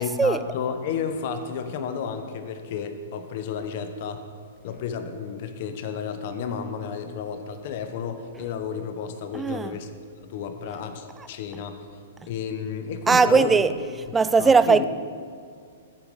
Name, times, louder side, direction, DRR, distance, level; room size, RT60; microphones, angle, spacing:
voice 1, 0.0-4.2 4.6-9.9 10.2-11.8 12.2-13.6 14.4-14.8, left 7 dB, 50° left, 8 dB, 0.9 m, -32 dB
voice 2, 9.3-9.7 13.1-13.7 14.1-14.8, right 5 dB, 10° right, 13 dB, 0.3 m, -18 dB
14.5 x 5.0 x 5.3 m, 2.2 s
hypercardioid pair, 145°, 0 cm